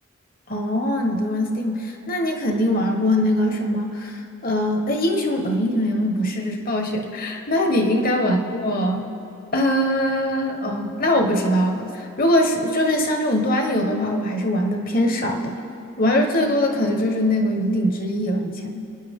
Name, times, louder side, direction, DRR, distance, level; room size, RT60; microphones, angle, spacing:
voice 1, 0.5-9.1 9.5-15.6 16.0-18.8, left 1 dB, 45° left, 3 dB, 1.4 m, -22 dB
27.5 x 10.0 x 3.7 m, 2.7 s
head